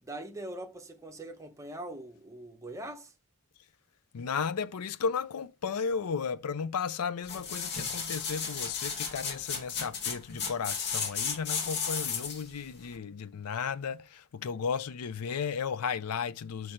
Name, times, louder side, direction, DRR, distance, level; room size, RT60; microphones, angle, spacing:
voice 1, 0.0-3.1, right 1 dB, 15° right, 0.8 m, -42 dB
voice 2, 4.1-16.7, left 6 dB, 75° left, 0.5 m, -34 dB
sound 1, 7.2-12.5 12.9-13.0, left 6 dB, 50° left, 1.5 m, -34 dB
6.4 x 3.2 x 5.7 m
head